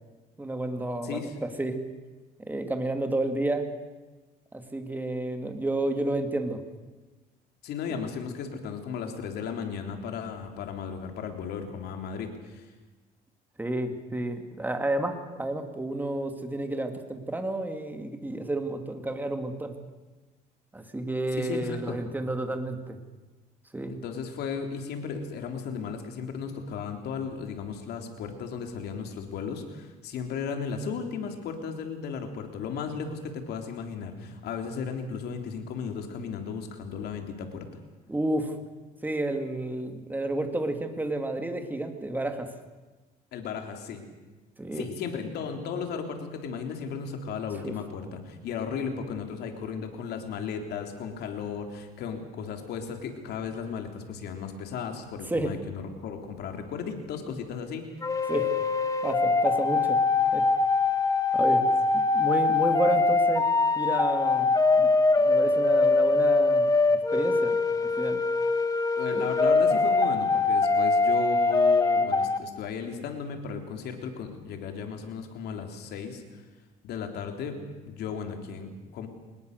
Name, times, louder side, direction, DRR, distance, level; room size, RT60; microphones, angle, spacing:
voice 1, 0.4-1.8 2.5-3.7 4.5-6.6 7.9-8.0 13.6-19.8 20.7-23.0 23.7-23.9 38.1-38.6 39.0-42.5 44.6-44.9 47.6-47.7 55.3-55.5 58.3-58.5 59.0-60.0 60.3-60.5 61.3-61.6 61.9-63.5 63.7-64.9 65.2-68.2 69.1-69.3, right 1 dB, 10° right, 6 dB, 2.5 m, -31 dB
voice 2, 7.6-12.7 21.3-22.0 23.9-37.7 43.3-44.0 44.7-57.9 69.0-76.4 76.8-79.1, left 6 dB, 75° left, 5 dB, 3.4 m, -35 dB
sound 1, 58.0-72.4, left 3 dB, 20° left, 1.7 m, -23 dB
24.5 x 20.5 x 6.7 m, 1.2 s
cardioid pair, 110°, 17 cm